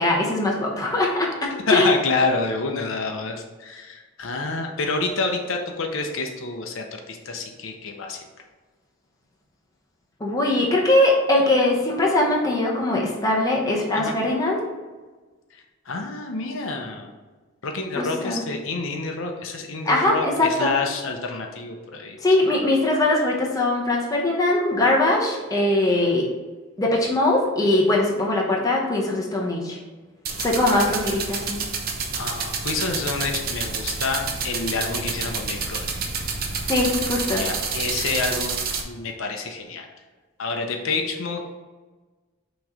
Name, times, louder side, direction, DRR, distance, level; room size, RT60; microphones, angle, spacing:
voice 1, 0.0-1.9 10.2-14.6 18.0-18.4 19.9-20.7 22.2-26.3 26.8-29.8 30.4-31.6 36.7-37.4, left 2 dB, 15° left, -2 dB, 0.8 m, -21 dB
voice 2, 1.7-8.2 14.0-14.1 15.9-17.1 17.6-22.2 32.2-35.9 37.3-38.6 38.8-39.9 40.4-41.5, left 3 dB, 65° left, 3 dB, 0.6 m, -28 dB
sound 1, 30.3-38.8, right 5 dB, 45° right, 0.7 m, -29 dB
6.1 x 3.1 x 4.9 m, 1.3 s
head